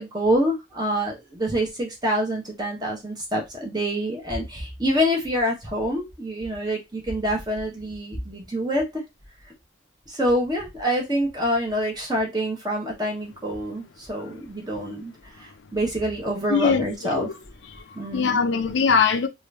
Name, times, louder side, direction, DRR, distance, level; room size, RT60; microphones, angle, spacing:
voice 1, 0.0-9.0 10.1-17.3 17.9-18.4, equal, 20° right, 1.1 m, -26 dB
voice 2, 16.5-17.4 17.6-19.3, left 5 dB, 65° left, 0.5 m, -23 dB
3.0 x 2.5 x 3.3 m
head